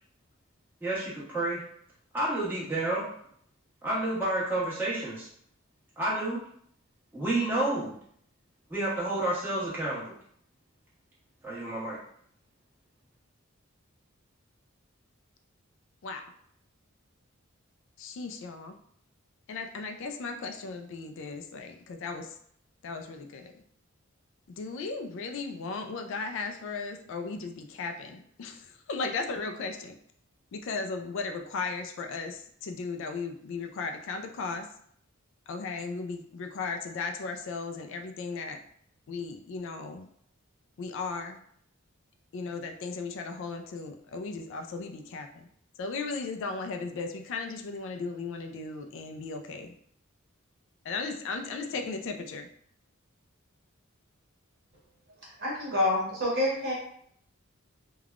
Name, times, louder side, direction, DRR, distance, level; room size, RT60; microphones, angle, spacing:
voice 1, 0.8-1.6 2.1-3.0 3.8-5.3 6.0-6.4 7.1-7.9 8.7-10.2 11.4-12.0, right 1 dB, 10° right, -8 dB, 1.1 m, -30 dB
voice 2, 18.0-18.8 19.5-22.4 22.8-23.6 24.5-30.0 30.5-34.7 35.5-38.6 39.1-40.1 40.8-41.4 42.3-45.5 45.8-49.7 50.8-52.5, left 4 dB, 65° left, 6 dB, 0.3 m, -36 dB
voice 3, 55.4-56.7, left 1 dB, 50° right, -4 dB, 1.2 m, -27 dB
3.4 x 2.2 x 2.4 m, 0.65 s
head